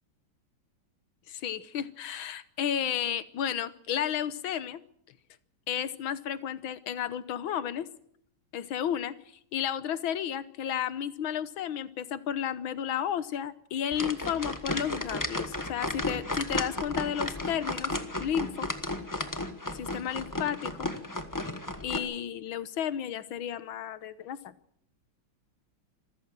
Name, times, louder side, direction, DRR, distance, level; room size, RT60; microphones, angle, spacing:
voice 1, 1.3-4.8 5.7-7.9 8.5-9.2 9.5-18.7 19.7-20.9 21.8-24.5, left 9 dB, 75° left, 14 dB, 1.8 m, -32 dB
sound 1, 13.9-22.0, left 2 dB, 10° left, 1.1 m, -34 dB
26.0 x 14.5 x 7.5 m, 0.69 s
omnidirectional pair, 2.2 m